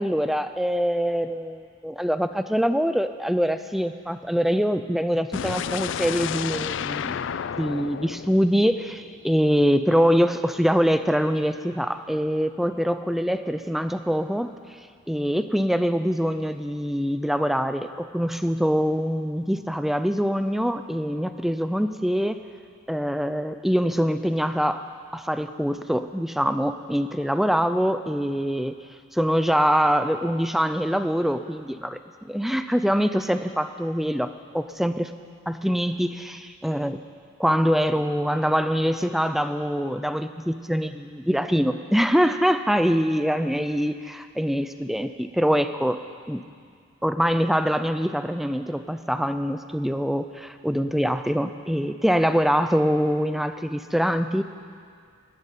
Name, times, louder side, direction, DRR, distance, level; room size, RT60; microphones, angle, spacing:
voice 1, 0.0-7.2 7.6-14.5 15.1-22.4 22.9-24.9 25.1-28.7 29.1-32.0 32.2-34.3 34.5-35.1 35.5-37.0 37.4-46.0 46.3-46.4 47.0-54.4, equal, ahead, 10 dB, 0.4 m, -24 dB
sound 1, 5.3-9.3, left 8 dB, 65° left, 0.3 m, -31 dB
12.0 x 12.0 x 9.2 m, 2.2 s
head